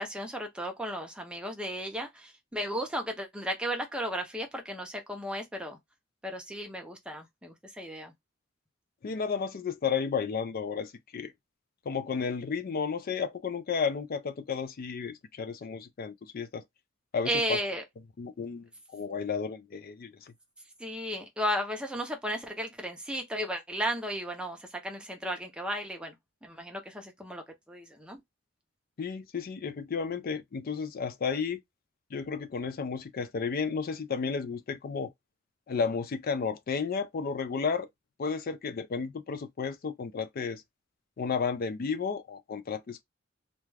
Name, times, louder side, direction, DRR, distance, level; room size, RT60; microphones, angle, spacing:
voice 1, 0.0-5.8 6.2-8.1 17.3-17.8 20.8-26.2 26.4-28.2, equal, 5° right, 0.6 m, -34 dB
voice 2, 9.0-11.3 11.9-16.6 17.1-17.3 18.2-20.3 29.0-31.6 32.1-35.1 35.7-37.9 38.2-40.6 41.2-43.0, left 5 dB, 50° left, 0.4 m, -32 dB
2.3 x 2.2 x 3.2 m
head